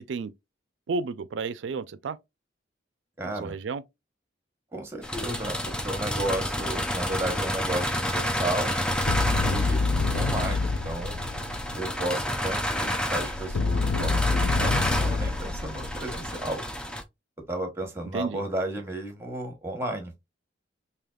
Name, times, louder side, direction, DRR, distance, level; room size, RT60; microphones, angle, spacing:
voice 1, 0.9-2.2 3.2-3.8 18.1-18.4, right 4 dB, 75° right, 0.4 m, -32 dB
voice 2, 3.2-3.6 4.7-8.8 9.5-9.8 10.1-11.2 11.7-16.6 17.5-20.1, right 1 dB, 15° right, 1.1 m, -33 dB
sound 1, 5.0-17.0, equal, 5° left, 0.5 m, -30 dB
sound 2, 8.9-12.0 13.2-16.5, left 3 dB, 85° left, 0.4 m, -28 dB
5.0 x 2.8 x 2.3 m
head